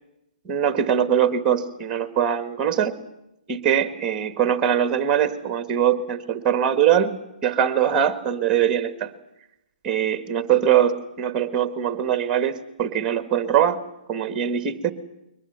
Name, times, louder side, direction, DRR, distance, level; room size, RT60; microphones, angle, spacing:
voice 1, 0.4-3.0 3.5-9.1 9.8-13.8 14.1-14.9, right 9 dB, 15° right, 11 dB, 1.5 m, -22 dB
22.5 x 19.5 x 8.0 m, 0.90 s
hypercardioid pair, 150°, 5 cm